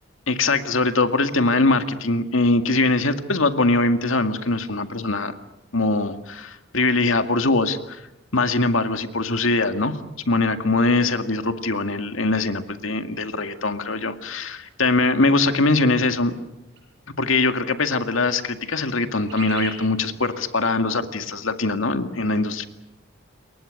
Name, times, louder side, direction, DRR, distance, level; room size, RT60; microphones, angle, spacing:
voice 1, 0.3-5.3 5.7-8.0 8.3-10.0 10.3-16.3 17.2-22.6, left 3 dB, 80° left, 8 dB, 2.1 m, -22 dB
sound 1, 16.7-16.8 17.3-17.4 18.2-18.3 18.6-19.9 20.3-20.4, right 5 dB, 60° right, 7.9 m, -38 dB
28.5 x 22.5 x 6.6 m, 0.95 s
head